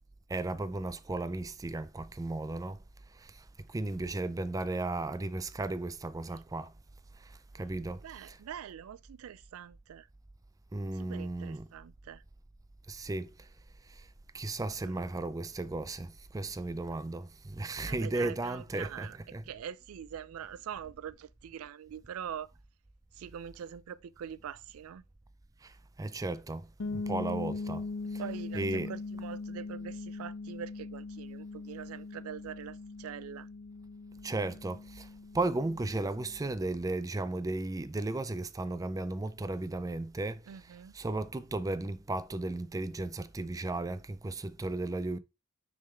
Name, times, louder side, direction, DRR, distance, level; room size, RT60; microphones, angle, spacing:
voice 1, 0.3-2.8 3.1-6.7 7.2-8.4 10.7-11.7 12.9-13.5 13.9-14.1 14.3-19.4 25.6-28.2 28.5-28.9 34.2-35.1 35.3-40.4 40.9-45.2, right 2 dB, 15° right, 0.4 m, -35 dB
voice 2, 8.0-10.1 10.9-12.2 14.8-15.0 17.9-19.2 19.5-22.5 23.1-25.0 28.2-33.5 40.5-40.9, right 8 dB, 85° right, 0.4 m, -44 dB
sound 1, 26.8-36.5, left 3 dB, 75° left, 0.7 m, -41 dB
6.4 x 3.6 x 4.3 m
head